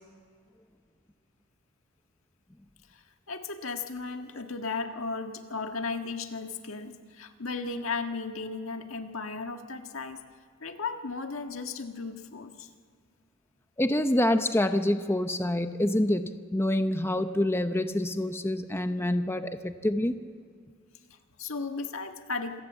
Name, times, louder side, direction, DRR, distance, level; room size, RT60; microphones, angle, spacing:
voice 1, 2.9-10.2 10.6-12.7 21.1-22.6, left 4 dB, 80° left, 6 dB, 1.6 m, -35 dB
voice 2, 13.8-20.1, left 1 dB, 10° left, 8 dB, 0.7 m, -26 dB
26.5 x 18.0 x 7.4 m, 2.1 s
head